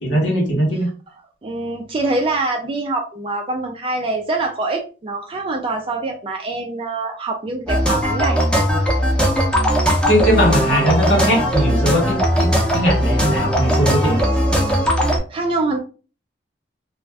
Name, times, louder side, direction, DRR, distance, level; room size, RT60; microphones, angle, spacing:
voice 1, 0.0-0.9 10.1-14.2, equal, 85° left, -2 dB, 1.1 m, -19 dB
voice 2, 1.4-8.4 10.7-10.9 15.3-15.8, right 2 dB, 30° right, 2 dB, 0.3 m, -24 dB
sound 1, 7.7-15.2, equal, 5° left, 0.6 m, -18 dB
2.4 x 2.3 x 3.2 m, 0.35 s
head